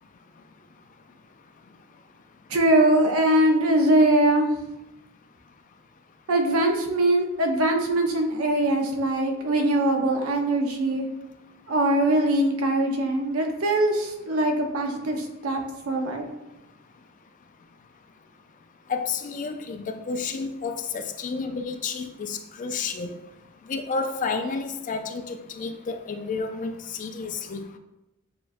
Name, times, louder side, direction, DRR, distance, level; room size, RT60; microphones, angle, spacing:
voice 1, 2.5-4.5 6.3-11.1 11.7-16.3, right 1 dB, 85° right, 3 dB, 0.7 m, -22 dB
voice 2, 18.9-23.2 23.7-27.6, left 4 dB, 40° left, 7 dB, 0.3 m, -31 dB
6.8 x 2.3 x 2.5 m, 0.95 s
head